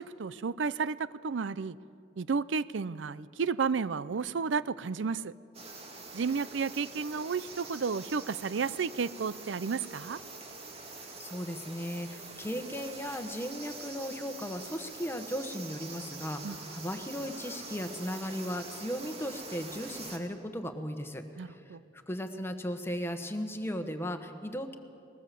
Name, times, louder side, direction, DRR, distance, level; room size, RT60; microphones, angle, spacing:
voice 1, 0.0-1.8 2.2-5.3 6.1-10.2 16.4-16.6 21.4-21.8, right 5 dB, 75° right, 18 dB, 0.5 m, -32 dB
sound 1, 5.5-20.2, right 3 dB, 35° right, 2.2 m, -45 dB
voice 2, 11.2-21.8 22.1-24.8, equal, 15° left, 7 dB, 1.2 m, -36 dB
21.0 x 19.0 x 7.6 m, 2.6 s
head